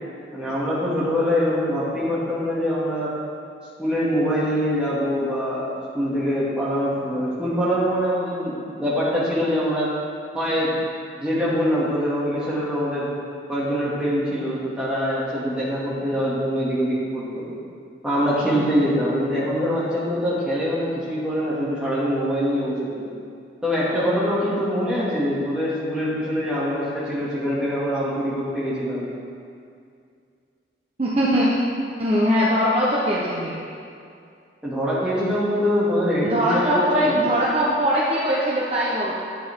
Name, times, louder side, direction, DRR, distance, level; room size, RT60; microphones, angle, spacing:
voice 1, 0.3-3.1 3.8-9.9 10.3-10.8 11.2-13.1 13.5-17.5 18.0-23.1 23.6-29.1 34.6-37.2, equal, 5° right, -9 dB, 2.5 m, -24 dB
voice 2, 31.0-31.5 32.0-33.6 36.2-39.1, equal, 35° right, -6 dB, 1.1 m, -21 dB
11.5 x 8.1 x 3.8 m, 2.3 s
head